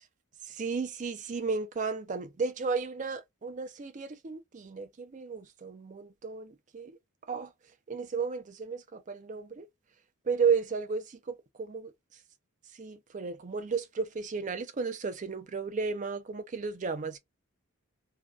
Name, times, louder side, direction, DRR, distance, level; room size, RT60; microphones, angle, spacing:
voice 1, 0.5-7.0 7.3-7.5 7.9-9.7 10.3-11.9 12.8-17.2, right 5 dB, 35° right, 0.4 m, -33 dB
2.5 x 2.2 x 2.3 m
head